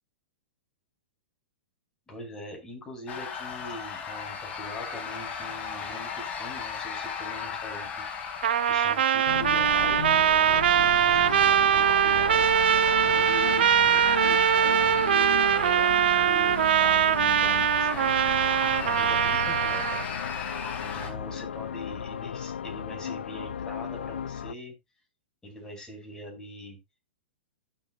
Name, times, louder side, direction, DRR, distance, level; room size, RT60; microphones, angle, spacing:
voice 1, 2.1-10.1 10.5-12.4 13.0-20.0 20.8-24.8 25.4-26.8, left 1 dB, 10° left, -1 dB, 6.0 m, -42 dB
sound 1, 3.1-21.1, left 6 dB, 30° left, 3.9 m, -37 dB
Trumpet, 8.4-20.0, right 9 dB, 65° right, 0.6 m, -22 dB
sound 2, 9.3-24.5, left 8 dB, 75° left, 0.4 m, -36 dB
15.5 x 7.3 x 2.5 m, 0.22 s
hypercardioid pair, 110°, 6 cm